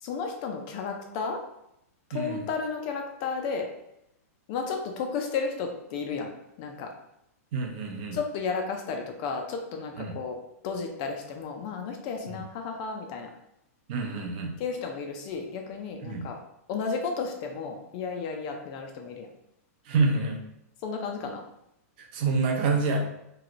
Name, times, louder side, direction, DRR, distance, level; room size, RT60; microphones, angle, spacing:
voice 1, 0.0-1.4 2.1-3.7 4.5-6.3 6.6-6.9 8.1-10.4 10.6-13.3 14.6-16.4 16.7-19.3 20.8-21.4, left 5 dB, 30° left, 3 dB, 0.3 m, -33 dB
voice 2, 2.1-2.5 7.5-8.2 10.0-10.2 12.3-12.4 13.9-14.5 16.0-16.3 19.9-20.4 22.0-23.0, right 3 dB, 40° right, 2 dB, 0.6 m, -27 dB
3.0 x 3.0 x 2.5 m, 0.79 s
supercardioid pair, 170°, 8 cm